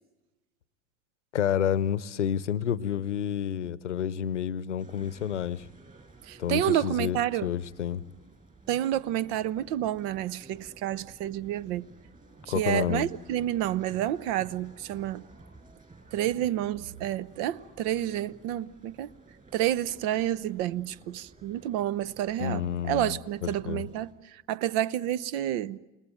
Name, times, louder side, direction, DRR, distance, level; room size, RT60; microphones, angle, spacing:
voice 1, 1.3-5.6 6.4-8.0 12.5-13.0 22.4-23.8, left 9 dB, 90° left, 0.8 m, -29 dB
sound 1, 4.8-24.1, right 3 dB, 25° right, 7.7 m, -54 dB
voice 2, 6.2-7.5 8.7-11.9 12.5-15.2 16.1-19.1 19.5-25.8, right 12 dB, 60° right, 0.8 m, -29 dB
29.0 x 19.5 x 9.2 m
hypercardioid pair, 75°, 35 cm